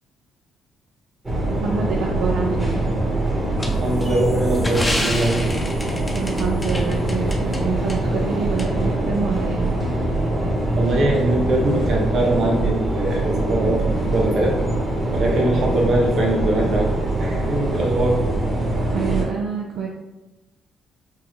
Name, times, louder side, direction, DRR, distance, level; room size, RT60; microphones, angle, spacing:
sound 1, 1.2-19.2, right 1 dB, 25° right, 1.4 m, -23 dB
voice 1, 1.6-2.8 6.1-9.7 18.9-19.9, right 5 dB, 80° right, -1 dB, 0.5 m, -26 dB
sound 2, 3.6-7.6 7.9-8.0 8.6-8.7, left 1 dB, 15° left, 0.6 m, -29 dB
voice 2, 3.8-5.5 10.8-14.6 15.1-16.9 17.2-18.3, right 1 dB, 60° right, -1 dB, 1.0 m, -22 dB
5.5 x 2.5 x 3.2 m, 1.0 s
cardioid pair, 90°, 0 cm